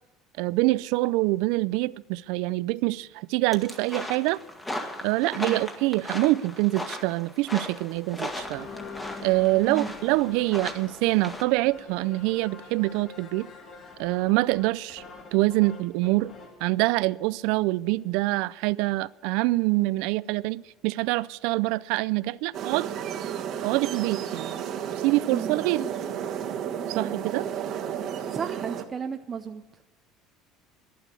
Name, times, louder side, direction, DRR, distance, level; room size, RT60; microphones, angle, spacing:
voice 1, 0.4-4.4 5.0-8.7 9.2-13.5 14.0-15.0 15.3-16.3 16.6-22.9 23.6-24.6 25.0-25.9 26.9-27.5, right 20 dB, 80° right, 0.4 m, -25 dB
sound 1, 3.5-11.4, left 1 dB, 10° left, 1.8 m, -37 dB
sound 2, 7.8-16.6, left 4 dB, 40° left, 3.4 m, -45 dB
sound 3, 22.5-28.8, right 9 dB, 55° right, 1.3 m, -32 dB
voice 2, 28.3-29.6, right 6 dB, 30° right, 0.6 m, -33 dB
12.0 x 11.0 x 8.4 m
cardioid pair, 125°, 0 cm